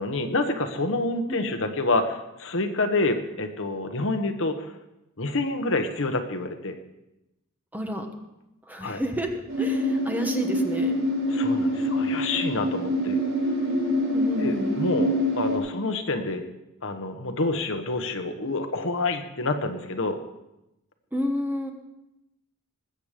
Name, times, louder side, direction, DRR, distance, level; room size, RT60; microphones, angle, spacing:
voice 1, 0.0-4.7 5.2-6.8 8.8-9.0 11.3-13.2 14.4-16.5 16.8-20.2, left 2 dB, 60° left, 6 dB, 1.2 m, -28 dB
voice 2, 7.7-8.1 8.7-9.3 9.6-11.0 14.1-14.8 21.1-21.7, equal, 10° right, 4 dB, 1.2 m, -30 dB
sound 1, 9.5-15.6, equal, 60° right, 6.0 m, -25 dB
20.5 x 8.1 x 5.1 m, 0.91 s
head